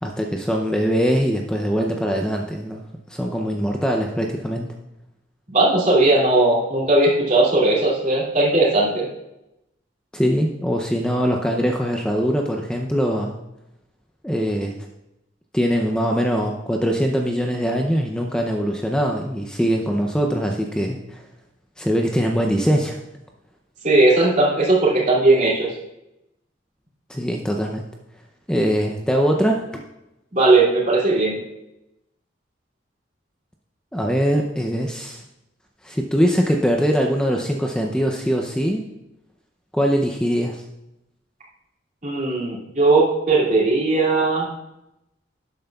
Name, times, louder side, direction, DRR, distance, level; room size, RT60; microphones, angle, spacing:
voice 1, 0.0-4.7 10.1-13.3 14.2-14.8 15.5-21.2 21.8-23.0 27.1-27.8 28.5-29.8 33.9-35.2 35.8-38.8 39.7-40.6, equal, 5° left, 1 dB, 0.5 m, -22 dB
voice 2, 5.5-9.1 23.8-25.7 30.3-31.4 42.0-44.5, right 2 dB, 40° right, -4 dB, 2.6 m, -18 dB
12.0 x 8.8 x 2.3 m, 0.90 s
head